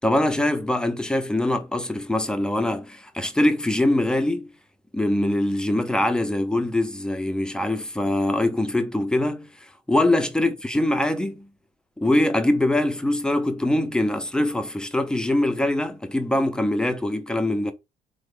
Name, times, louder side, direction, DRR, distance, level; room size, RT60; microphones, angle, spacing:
voice 1, 0.0-4.5 4.9-11.5 12.0-17.7, left 1 dB, 5° left, 0.4 m, -23 dB
3.5 x 2.0 x 3.3 m
cardioid pair, 110°, 17 cm